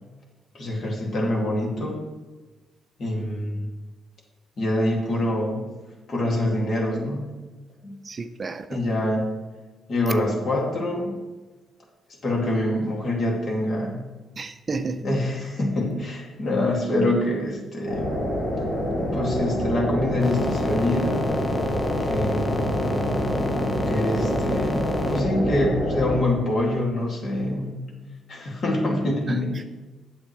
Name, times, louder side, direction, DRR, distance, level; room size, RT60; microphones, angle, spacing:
voice 1, 0.5-2.0 3.0-3.7 4.6-5.6 6.1-7.3 7.8-7.9 8.7-9.3 9.9-11.2 12.2-14.0 15.0-18.1 19.1-21.3 22.0-22.6 23.9-27.8 28.3-29.6, left 1 dB, 50° left, 2.3 m, -25 dB
voice 2, 8.0-8.8 14.4-15.0 29.3-29.6, right 4 dB, 35° right, 0.4 m, -32 dB
sound 1, 17.9-26.2, equal, 80° left, 2.6 m, -26 dB
sound 2, 20.2-25.2, left 2 dB, 20° left, 0.8 m, -33 dB
8.7 x 7.3 x 3.2 m
cardioid pair, 90°, 0 cm